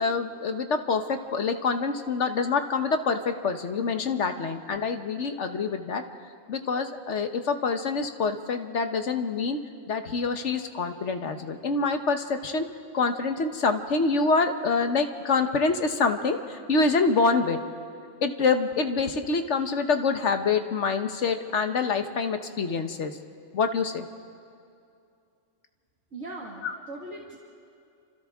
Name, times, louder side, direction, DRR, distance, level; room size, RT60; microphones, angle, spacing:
voice 1, 0.0-6.0 6.5-9.6 9.9-12.7 12.9-17.6 18.2-23.2 23.5-24.1 26.6-26.7, left 4 dB, 65° left, 7 dB, 1.4 m, -26 dB
voice 2, 26.1-27.4, right 2 dB, 65° right, -4 dB, 2.3 m, -40 dB
29.5 x 26.0 x 3.6 m, 2.5 s
omnidirectional pair, 1.3 m